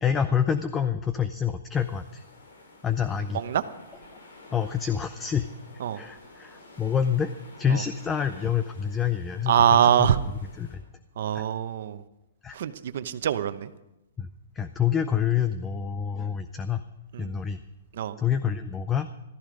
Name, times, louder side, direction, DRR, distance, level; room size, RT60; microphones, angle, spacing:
voice 1, 0.0-2.2 2.8-3.4 4.5-5.5 5.9-7.3 7.6-9.6 9.8-10.1 10.6-10.8 11.3-11.4 12.4-12.6 14.2-14.3 14.6-16.8 17.2-17.6 18.2-19.1, left 8 dB, 10° left, 11 dB, 0.4 m, -27 dB
sound 1, 1.7-10.8, left 2 dB, 80° left, 4.3 m, -51 dB
voice 2, 9.5-10.2 11.2-12.0 12.5-13.7 17.1-17.3 17.9-18.1, right 9 dB, 55° right, 11 dB, 0.9 m, -23 dB
15.0 x 13.5 x 5.1 m, 0.94 s
hypercardioid pair, 170°, 0 cm